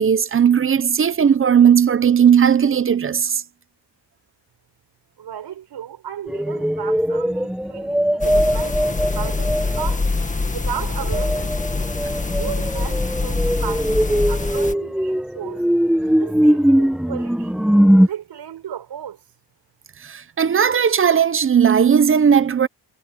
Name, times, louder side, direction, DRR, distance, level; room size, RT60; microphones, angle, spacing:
voice 1, 0.0-3.4 20.0-22.7, right 8 dB, 30° right, 0.7 m, -16 dB
voice 2, 5.2-10.1 10.5-11.5 12.3-15.6 16.2-17.6 18.0-19.2, right 10 dB, 70° right, 5.4 m, -35 dB
sound 1, 6.3-9.9 11.1-18.1, equal, ahead, 1.0 m, -20 dB
sound 2, 8.2-14.7, left 3 dB, 15° left, 1.9 m, -24 dB
wide cardioid pair, 175°, 43 cm